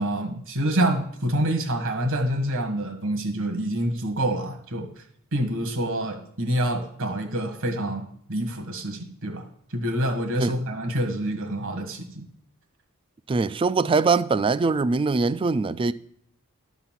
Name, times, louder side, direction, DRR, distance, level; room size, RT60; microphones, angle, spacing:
voice 1, 0.0-5.0 5.3-8.0 8.3-12.3, right 1 dB, 60° right, 1.6 m, -27 dB
voice 2, 13.3-15.9, right 4 dB, 25° right, 0.3 m, -22 dB
11.5 x 4.1 x 7.4 m
head